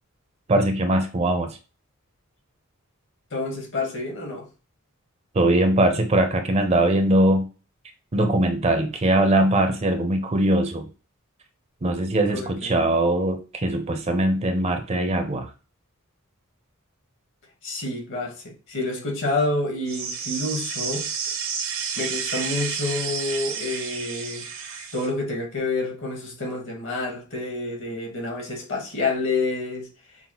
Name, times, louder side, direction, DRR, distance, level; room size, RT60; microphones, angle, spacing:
voice 1, 0.5-1.5 5.3-7.4 8.1-10.9 11.8-15.5, right 1 dB, 30° right, 0.5 m, -21 dB
voice 2, 3.3-4.5 12.3-12.7 17.6-21.0 22.0-24.5 24.9-29.9, left 2 dB, 60° left, 1.4 m, -28 dB
sound 1, 19.9-25.1, right 6 dB, 65° right, 0.7 m, -30 dB
5.6 x 2.1 x 2.9 m
head